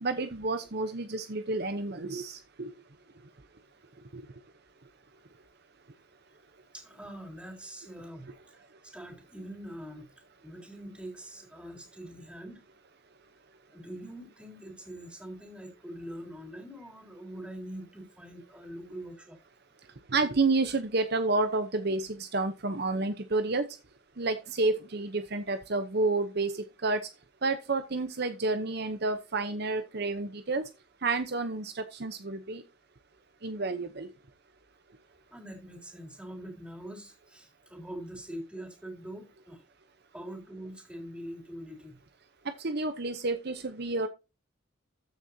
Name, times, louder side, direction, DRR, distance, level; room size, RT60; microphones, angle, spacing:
voice 1, 0.0-2.3 20.1-23.6 24.2-26.5 26.8-27.0 27.4-30.6 31.0-31.7 32.0-32.6 33.4-34.1 42.6-44.1, right 3 dB, 55° right, 0.9 m, -29 dB
voice 2, 6.7-8.3 8.8-10.1 10.4-12.6 13.7-19.4 35.3-39.6 40.1-42.0, right 1 dB, 5° right, 3.7 m, -43 dB
14.0 x 6.5 x 2.8 m
head